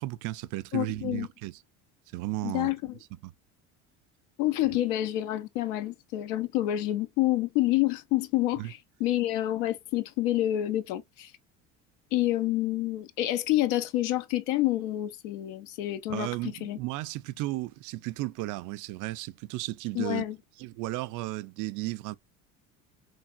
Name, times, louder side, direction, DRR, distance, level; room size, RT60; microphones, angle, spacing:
voice 1, 0.0-1.6 2.1-2.7 3.2-3.3 8.6-8.7 16.1-20.3 20.6-22.1, right 18 dB, 55° right, 0.4 m, -34 dB
voice 2, 0.7-1.3 2.4-3.0 4.4-11.3 12.1-16.8 19.9-20.4, left 15 dB, 75° left, 0.6 m, -28 dB
3.3 x 2.4 x 2.3 m
hypercardioid pair, 80°, 38 cm